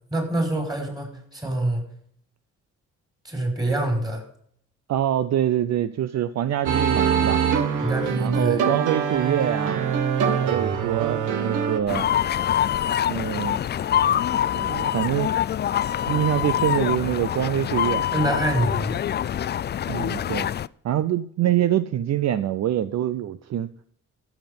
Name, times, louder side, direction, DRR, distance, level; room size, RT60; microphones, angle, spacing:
voice 1, 0.1-1.8 3.2-4.2 7.8-8.6 18.1-19.0, right 1 dB, 15° right, 2 dB, 5.3 m, -25 dB
voice 2, 4.9-7.4 8.2-9.8 10.4-12.1 13.1-13.6 14.5-15.3 16.1-18.1 19.9-20.5 20.8-23.7, right 11 dB, 60° right, 14 dB, 0.7 m, -25 dB
sound 1, 6.7-11.8, right 7 dB, 85° right, 1.5 m, -24 dB
sound 2, 11.9-20.7, left 10 dB, 35° left, 0.4 m, -25 dB
14.5 x 7.3 x 5.4 m, 0.63 s
cardioid pair, 90°, 30 cm